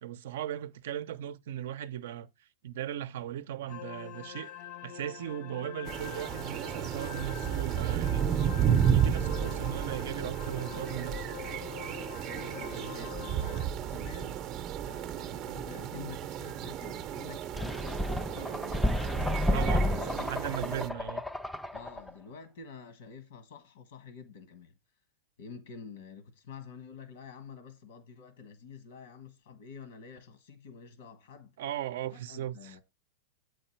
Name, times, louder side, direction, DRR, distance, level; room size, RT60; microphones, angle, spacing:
voice 1, 0.0-4.5 4.8-8.3 8.9-11.3 19.4-21.2 31.6-32.8, right 11 dB, 70° right, 0.6 m, -38 dB
sound 1, 3.7-13.7, left 11 dB, 45° left, 0.6 m, -45 dB
sound 2, 5.8-20.9, right 9 dB, 35° right, 0.6 m, -32 dB
voice 2, 12.2-14.4 14.8-18.9 19.2-20.7 21.7-24.8 25.4-31.6 32.0-32.8, left 5 dB, 80° left, 1.3 m, -48 dB
sound 3, 17.6-22.1, left 1 dB, 5° left, 0.3 m, -31 dB
8.1 x 4.7 x 4.5 m
supercardioid pair, 150°, 0 cm